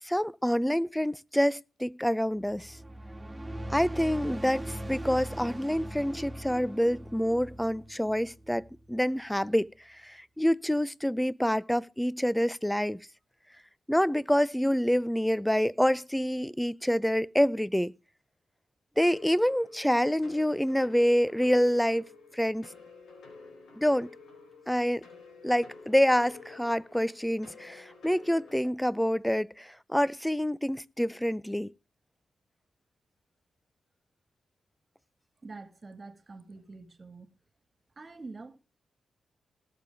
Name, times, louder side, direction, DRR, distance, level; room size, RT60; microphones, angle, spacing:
voice 1, 0.0-2.8 3.7-13.0 13.9-17.9 19.0-22.1 22.3-22.7 23.8-24.1 24.7-25.0 25.4-31.7, equal, 5° left, 0.6 m, -27 dB
sound 1, 2.4-9.0, right 1 dB, 15° right, 2.2 m, -40 dB
sound 2, 19.0-28.6, left 4 dB, 75° left, 4.4 m, -50 dB
voice 2, 35.4-37.3 38.0-38.6, right 3 dB, 40° right, 2.0 m, -46 dB
19.0 x 7.0 x 3.5 m
supercardioid pair, 45°, 0 cm